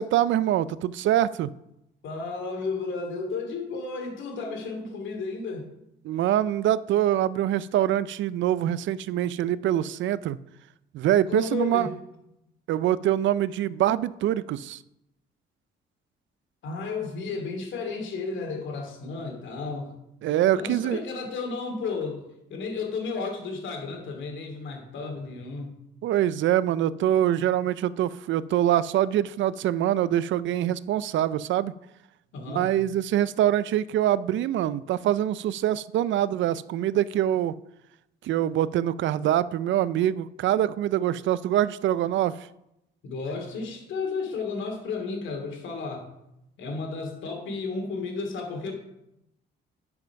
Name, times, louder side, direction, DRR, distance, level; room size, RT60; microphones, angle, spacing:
voice 1, 0.0-1.5 6.1-10.4 10.9-11.9 12.7-14.8 20.2-21.0 26.0-31.7 32.5-37.6 38.2-42.4, right 12 dB, 75° right, 18 dB, 0.5 m, -24 dB
voice 2, 2.0-5.7 11.3-12.0 16.6-19.9 20.6-22.2 22.5-25.7 32.3-32.7 43.0-46.1 46.6-48.8, left 4 dB, 75° left, 3 dB, 2.6 m, -33 dB
10.5 x 5.9 x 5.8 m, 0.85 s
cardioid pair, 90°, 20 cm